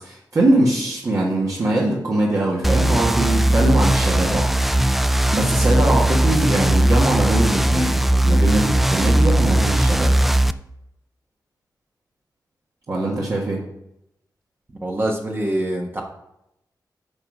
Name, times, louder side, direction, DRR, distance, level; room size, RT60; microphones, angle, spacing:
voice 1, 0.0-4.4 5.3-10.1 12.9-13.6, right 1 dB, 50° right, -5 dB, 1.7 m, -21 dB
sound 1, 2.6-10.5, right 1 dB, 5° right, 0.3 m, -18 dB
voice 2, 14.8-16.0, right 1 dB, 30° right, 0 dB, 1.2 m, -24 dB
9.6 x 4.0 x 6.4 m, 0.82 s
wide cardioid pair, 100°, 7 cm